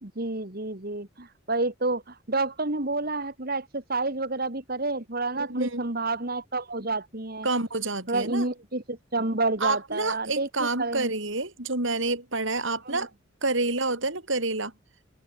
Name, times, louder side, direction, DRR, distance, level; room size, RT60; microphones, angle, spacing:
voice 1, 0.0-7.5 8.1-11.1 12.9-13.1, right 2 dB, 45° right, 2.1 m, -29 dB
voice 2, 5.3-5.8 7.4-8.4 9.6-13.1 13.4-14.7, right 2 dB, 60° right, 5.0 m, -28 dB
open air
head